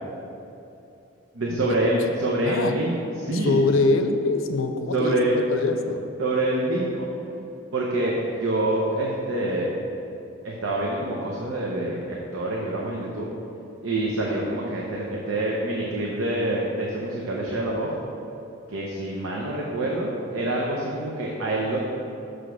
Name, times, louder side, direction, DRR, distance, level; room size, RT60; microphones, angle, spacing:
voice 1, 1.3-3.6 4.9-5.4 6.2-7.1 7.7-9.7 10.4-13.3 13.8-17.9 18.7-21.8, right 1 dB, 90° right, -3 dB, 0.9 m, -26 dB
voice 2, 3.3-5.2 5.5-6.0, left 3 dB, 85° left, 7 dB, 0.6 m, -23 dB
6.3 x 5.1 x 6.2 m, 2.8 s
head